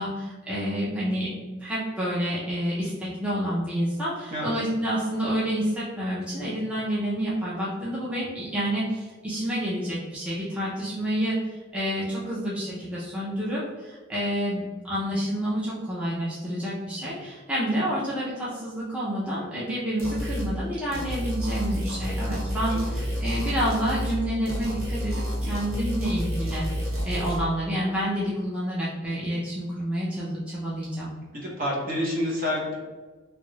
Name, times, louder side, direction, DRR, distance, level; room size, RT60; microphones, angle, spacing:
voice 1, 0.0-31.1, equal, 5° right, -9 dB, 0.6 m, -29 dB
sound 1, 20.0-20.5 20.9-24.2 24.5-27.4, equal, 80° right, 1.0 m, -29 dB
voice 2, 22.7-23.2 31.3-32.7, left 1 dB, 45° right, -5 dB, 0.9 m, -29 dB
3.0 x 2.4 x 3.2 m, 1.3 s
head